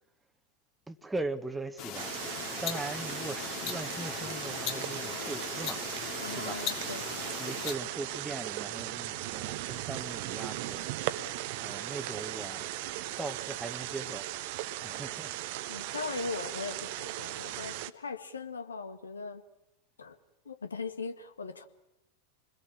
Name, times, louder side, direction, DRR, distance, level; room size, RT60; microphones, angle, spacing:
voice 1, 0.9-2.1 2.6-5.8 6.3-6.6 7.4-11.0 11.6-12.7 13.2-14.3 14.8-15.3, right 2 dB, 10° right, 1.4 m, -39 dB
sound 1, 1.8-7.8, left 9 dB, 40° left, 2.7 m, -38 dB
sound 2, 1.9-17.9, right 15 dB, 50° right, 1.0 m, -38 dB
voice 2, 6.2-7.1 15.7-19.4 20.0-20.2 20.5-21.7, left 4 dB, 75° left, 2.0 m, -39 dB
28.5 x 21.0 x 7.4 m
figure-of-eight pair, 90°, 0 cm